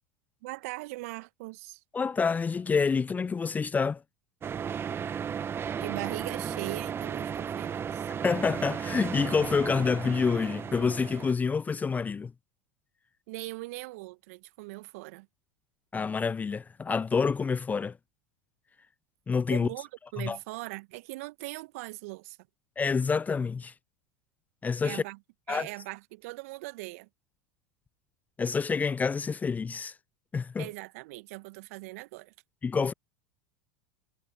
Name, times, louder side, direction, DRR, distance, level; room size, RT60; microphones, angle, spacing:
voice 1, 0.4-1.8 5.8-8.1 13.3-15.3 19.5-22.4 24.8-25.2 25.5-27.1 30.6-32.3, right 23 dB, 60° right, 1.5 m, -40 dB
voice 2, 1.9-4.0 8.2-12.3 15.9-18.0 19.3-19.7 20.2-20.4 22.8-23.7 24.6-25.0 25.5-25.7 28.4-29.9 30.3-30.7 32.6-32.9, left 5 dB, 20° left, 0.6 m, -27 dB
sound 1, 4.4-11.3, right 7 dB, 25° right, 1.4 m, -35 dB
figure-of-eight pair, 85°, 9 cm